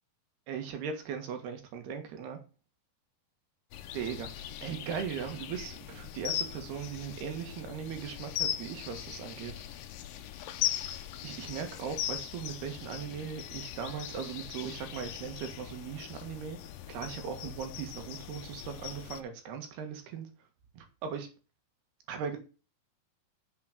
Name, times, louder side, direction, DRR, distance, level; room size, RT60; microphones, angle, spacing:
voice 1, 0.5-2.4 3.9-9.5 11.2-16.6 16.9-20.3 20.7-21.3 22.1-22.4, right 7 dB, 85° right, 5 dB, 3.7 m, -39 dB
sound 1, 3.7-19.2, left 11 dB, 75° left, 2.3 m, -39 dB
7.4 x 6.2 x 6.7 m, 0.34 s
omnidirectional pair, 4.5 m